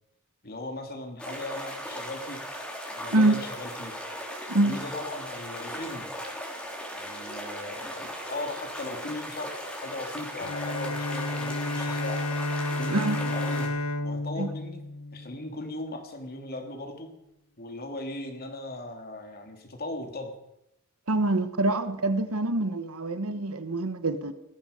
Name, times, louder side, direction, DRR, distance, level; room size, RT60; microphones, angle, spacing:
voice 1, 0.4-2.5 3.0-3.9 4.6-6.1 6.9-12.3 12.7-14.8 15.1-17.1 17.6-20.3, left 2 dB, 45° left, 2.7 m, -38 dB
sound 1, 1.2-13.7, equal, 5° left, 3.3 m, -38 dB
Bowed string instrument, 10.4-15.9, left 2 dB, 85° left, 1.0 m, -31 dB
voice 2, 21.1-24.3, right 2 dB, 85° right, 1.3 m, -25 dB
18.5 x 14.0 x 5.2 m
head